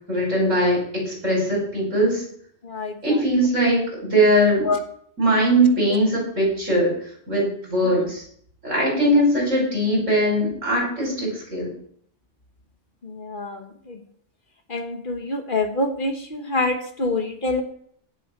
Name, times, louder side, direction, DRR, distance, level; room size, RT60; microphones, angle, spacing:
voice 1, 0.1-2.2 3.0-4.7 5.2-6.9 7.3-8.2 8.6-11.7, right 1 dB, 85° right, -2 dB, 6.2 m, -20 dB
voice 2, 2.6-3.0 4.6-4.8 7.8-8.0 13.0-14.0 14.7-17.6, left 2 dB, 45° left, 5 dB, 1.5 m, -26 dB
17.0 x 7.4 x 4.6 m, 0.62 s
omnidirectional pair, 1.3 m